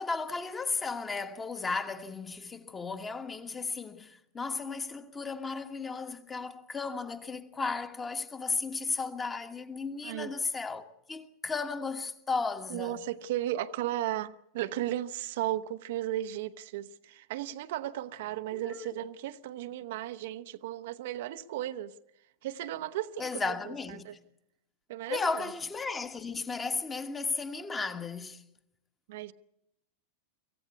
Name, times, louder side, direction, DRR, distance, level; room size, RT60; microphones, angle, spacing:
voice 1, 0.0-13.0 18.5-19.0 23.2-24.2 25.1-28.4, left 4 dB, 15° left, 1.4 m, -35 dB
voice 2, 12.7-21.9 22.4-24.2 24.9-25.4 29.1-29.3, right 13 dB, 55° right, 0.7 m, -35 dB
25.0 x 15.5 x 8.3 m
figure-of-eight pair, 90°, 0 cm